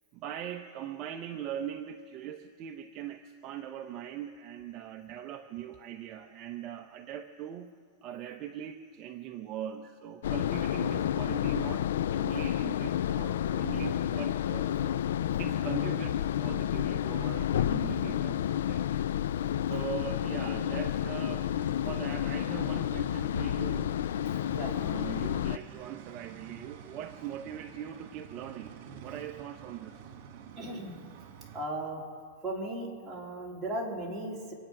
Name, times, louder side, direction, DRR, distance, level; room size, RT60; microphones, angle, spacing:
voice 1, 0.1-7.7 8.0-15.0 15.4-19.0 19.6-21.5 21.8-24.0 24.7-28.7 29.0-30.0, right 10 dB, 35° right, 5 dB, 0.7 m, -41 dB
sound 1, 10.2-25.6, left 11 dB, 80° left, 0.3 m, -30 dB
sound 2, 20.9-31.7, right 7 dB, 50° right, 2.1 m, -49 dB
voice 2, 30.6-30.9 31.5-32.0 32.4-34.5, right 1 dB, 10° right, -6 dB, 3.6 m, -36 dB
26.5 x 8.8 x 5.9 m, 2.1 s
supercardioid pair, 150°, 0 cm